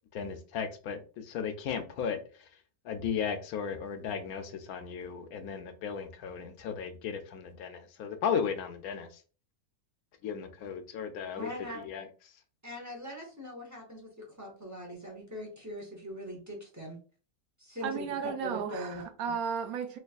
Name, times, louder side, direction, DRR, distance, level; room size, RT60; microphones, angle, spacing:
voice 1, 0.1-2.5 2.8-9.2 10.2-11.5 11.7-12.1, left 7 dB, 75° left, 1.0 m, -35 dB
voice 2, 11.4-11.8 12.6-17.0 17.6-18.1 18.4-19.0, equal, 15° right, 0.6 m, -41 dB
voice 3, 17.8-20.0, right 6 dB, 75° right, 1.0 m, -34 dB
3.3 x 3.2 x 2.3 m
omnidirectional pair, 1.6 m